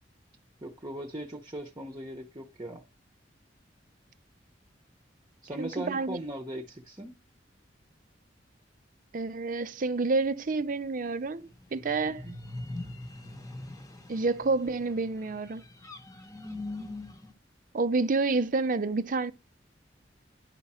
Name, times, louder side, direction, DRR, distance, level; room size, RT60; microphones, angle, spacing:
voice 1, 0.6-2.8 5.4-7.1 12.0-12.4, right 1 dB, 25° right, 0.9 m, -39 dB
voice 2, 5.6-6.2 9.1-12.3 14.1-15.6 17.7-19.3, right 3 dB, 45° right, 0.5 m, -29 dB
sound 1, 11.5-17.3, left 2 dB, 20° left, 1.0 m, -42 dB
10.5 x 4.8 x 4.3 m
head